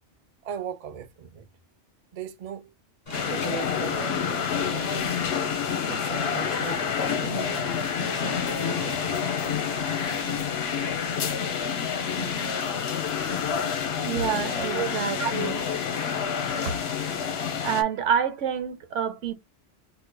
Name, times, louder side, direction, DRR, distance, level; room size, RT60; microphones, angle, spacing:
voice 1, 0.4-1.5 2.1-2.7 3.2-5.0 5.9-7.7 8.0-9.2 14.7-14.9, right 8 dB, 55° right, 0.4 m, -38 dB
sound 1, 3.1-17.8, left 7 dB, 60° left, 1.0 m, -28 dB
Alarm, 3.1-10.4, left 2 dB, 30° left, 1.7 m, -40 dB
voice 2, 14.0-15.7 16.7-16.9 17.6-19.3, right 8 dB, 90° right, 1.1 m, -28 dB
4.7 x 2.6 x 2.2 m
omnidirectional pair, 1.2 m